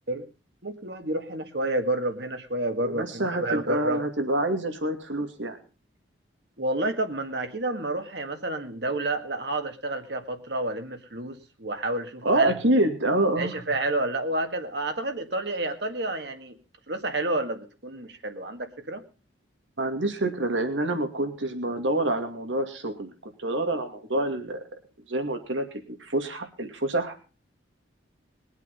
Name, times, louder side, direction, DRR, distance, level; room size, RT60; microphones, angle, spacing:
voice 1, 0.6-4.0 6.6-12.5 13.4-16.6 16.9-19.0, right 2 dB, 60° right, 6 dB, 1.9 m, -30 dB
voice 2, 2.8-5.6 12.2-13.5 19.8-24.6 25.1-27.2, right 1 dB, 80° right, 7 dB, 2.5 m, -27 dB
21.5 x 8.2 x 5.5 m, 0.35 s
head